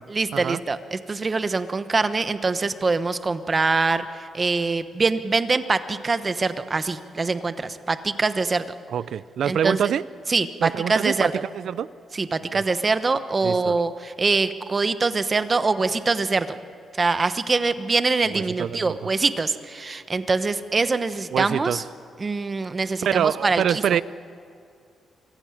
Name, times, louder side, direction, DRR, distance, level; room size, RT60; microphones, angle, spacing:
voice 1, 0.1-8.7 9.4-9.9 10.3-11.4 12.1-16.6 17.0-21.8 22.2-23.8, right 3 dB, 30° right, 11 dB, 1.1 m, -24 dB
voice 2, 8.9-10.0 10.6-11.3 11.5-11.9 12.5-12.6 13.4-13.8 18.3-19.0 21.3-21.8 23.0-24.0, right 9 dB, 70° right, 18 dB, 0.5 m, -25 dB
25.0 x 15.5 x 9.9 m, 2.4 s
cardioid pair, 120°, 0 cm